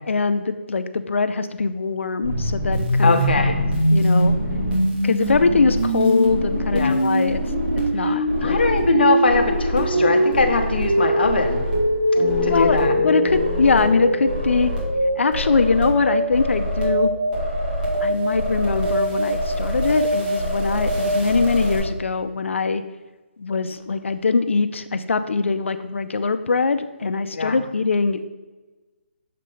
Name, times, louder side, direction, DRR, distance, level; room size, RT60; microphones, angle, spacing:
voice 1, 0.1-3.4 3.9-4.3 5.0-7.4 7.9-8.6 12.5-14.7 15.2-17.1 18.0-22.8 23.4-28.2, left 4 dB, 85° left, 10 dB, 0.5 m, -22 dB
sound 1, 2.2-21.8, right 1 dB, 45° right, 2.2 m, -22 dB
voice 2, 3.0-3.6 6.7-7.0 8.4-11.6 12.4-12.9 27.4-27.6, left 4 dB, 55° left, 5 dB, 0.8 m, -21 dB
sound 2, 9.9-15.9, left 6 dB, 20° left, 1.1 m, -31 dB
6.6 x 3.2 x 5.3 m, 1.2 s
hypercardioid pair, 175°, 7 cm